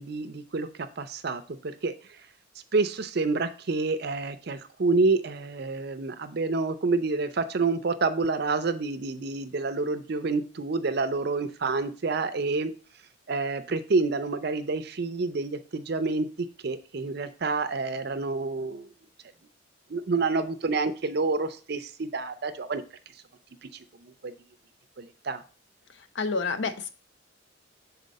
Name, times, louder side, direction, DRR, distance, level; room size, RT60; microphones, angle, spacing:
voice 1, 0.0-1.9 2.7-12.7 13.3-16.3 16.6-18.9 19.9-22.8 23.6-23.7 24.0-24.3 25.0-25.4, right 3 dB, 50° right, 11 dB, 0.5 m, -28 dB
voice 2, 26.2-26.9, left 4 dB, 60° left, 10 dB, 0.5 m, -28 dB
6.5 x 4.2 x 4.1 m, 0.37 s
head